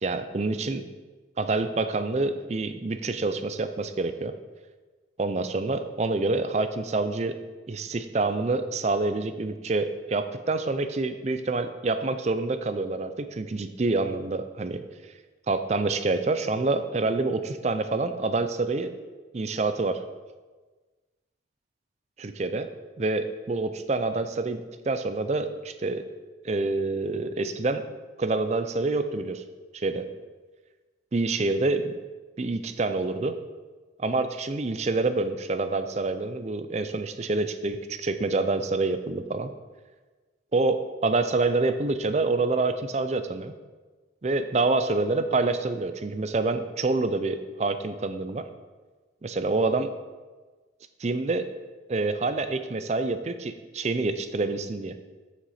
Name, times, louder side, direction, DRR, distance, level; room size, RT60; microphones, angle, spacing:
voice 1, 0.0-0.8 1.4-4.3 5.2-7.4 7.7-14.8 15.5-18.9 19.3-20.0 22.2-22.7 23.0-26.1 26.4-27.8 28.2-29.4 29.7-30.1 31.1-31.9 32.4-33.4 34.0-39.5 40.5-43.5 44.2-48.5 49.2-49.9 51.0-51.5 51.9-55.0, right 3 dB, 35° right, 10 dB, 0.4 m, -27 dB
7.8 x 6.5 x 4.2 m, 1.3 s
head